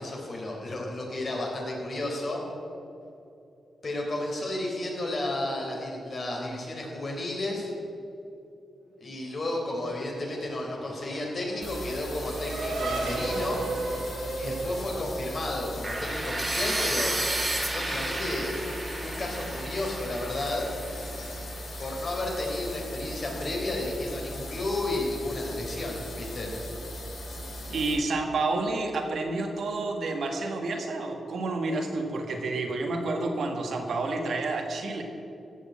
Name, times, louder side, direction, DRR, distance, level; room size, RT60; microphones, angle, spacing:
voice 1, 0.0-2.4 3.8-7.7 9.0-13.6 14.4-17.2 17.7-18.6 19.0-20.7 21.8-26.5, left 1 dB, 45° left, -1 dB, 3.9 m, -32 dB
Race car auto racing / Accelerating revving vroom, 9.8-15.9, right 2 dB, 90° right, 2.5 m, -35 dB
sound 1, 11.6-27.9, equal, 70° left, 3.2 m, -39 dB
sound 2, 15.8-21.8, right 1 dB, 20° right, 2.2 m, -32 dB
voice 2, 27.7-35.0, right 3 dB, 70° right, 3 dB, 1.9 m, -29 dB
15.0 x 6.6 x 8.6 m, 2.8 s
cardioid pair, 85°, 0 cm